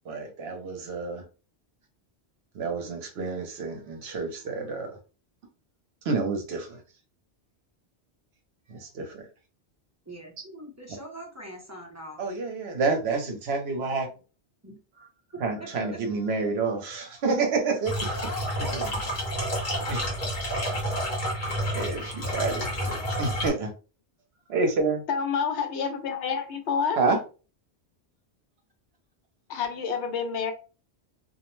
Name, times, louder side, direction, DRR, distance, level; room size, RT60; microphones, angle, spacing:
voice 1, 0.1-1.2 2.5-5.0 6.0-6.8 8.7-9.2 12.2-14.1 15.4-17.9 18.7-18.8 19.9-20.0 21.7-23.7 24.5-25.0 27.0-27.2, right 4 dB, 70° right, 0.9 m, -28 dB
voice 2, 10.1-12.2 14.6-14.8 18.2-18.8, left 1 dB, 20° right, 0.5 m, -41 dB
sound 1, 17.9-23.5, equal, 45° left, 1.0 m, -29 dB
voice 3, 25.1-27.0 29.5-30.5, left 6 dB, 80° left, 0.9 m, -28 dB
2.4 x 2.0 x 3.0 m
omnidirectional pair, 1.2 m